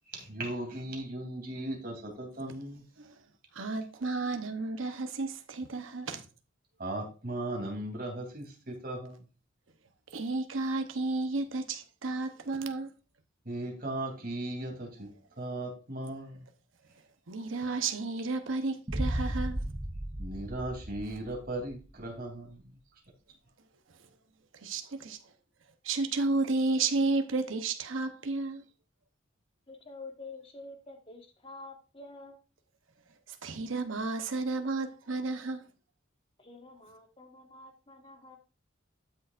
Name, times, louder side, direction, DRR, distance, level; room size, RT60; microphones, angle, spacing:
voice 1, 0.1-2.8 6.8-9.2 13.4-15.1 15.4-16.4 20.2-22.6, right 1 dB, 45° right, 3.0 m, -37 dB
voice 2, 3.5-6.2 10.1-12.9 17.3-19.6 24.5-25.2 25.8-28.6 33.3-35.7, right 3 dB, 80° right, 0.9 m, -32 dB
Boom, 18.9-21.8, right 1 dB, 20° right, 0.7 m, -35 dB
voice 3, 29.7-32.4 36.4-38.4, left 3 dB, 25° left, 1.4 m, -48 dB
12.5 x 6.7 x 2.5 m
head